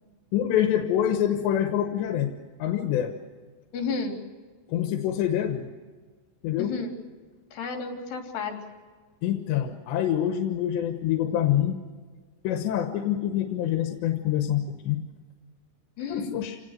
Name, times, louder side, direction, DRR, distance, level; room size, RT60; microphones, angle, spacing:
voice 1, 0.3-2.3 2.6-3.1 4.7-5.7 6.4-6.8 9.2-11.8 12.5-15.0 16.1-16.6, left 11 dB, 90° left, 5 dB, 3.5 m, -26 dB
voice 2, 3.7-4.2 6.6-6.9 7.5-8.6 16.0-16.4, left 4 dB, 70° left, 3 dB, 5.4 m, -31 dB
28.0 x 19.0 x 6.6 m, 1.4 s
omnidirectional pair, 4.9 m